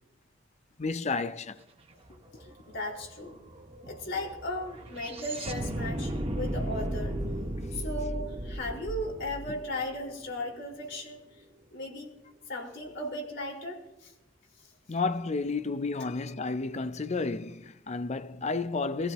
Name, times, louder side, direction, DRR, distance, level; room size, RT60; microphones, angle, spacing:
voice 1, 0.8-1.6 3.9-4.0 14.9-19.1, left 3 dB, 35° left, 0.6 m, -31 dB
sound 1, 2.0-2.1 2.4-10.6, right 1 dB, 30° right, 1.5 m, -35 dB
voice 2, 2.7-3.4 3.9-7.2 7.7-11.2 11.7-12.1 12.5-14.1, left 1 dB, 65° left, 4.9 m, -36 dB
22.5 x 15.5 x 3.1 m
head